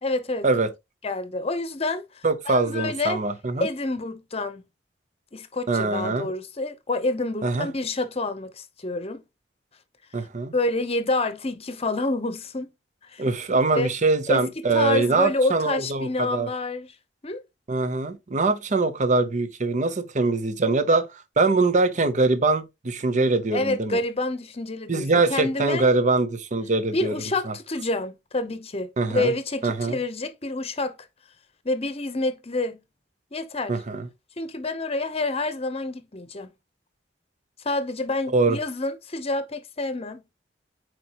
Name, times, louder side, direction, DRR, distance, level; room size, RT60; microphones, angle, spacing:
voice 1, 0.0-0.5 1.0-3.2 3.6-4.6 5.3-9.2 10.5-12.7 13.0-13.3 13.8-13.9 14.3-17.0 17.2-17.4 23.5-25.9 26.9-31.0 31.6-32.8 33.3-33.8 34.4-36.5 37.6-40.2, left 2 dB, 35° left, 0.9 m, -28 dB
voice 2, 2.2-3.7 5.7-6.3 7.4-7.7 10.1-10.5 13.2-16.5 17.7-21.1 21.4-24.0 24.9-27.1 29.0-29.3 29.6-30.0 33.7-34.1 38.3-38.6, right 3 dB, 45° right, 0.8 m, -23 dB
8.3 x 4.5 x 3.0 m
head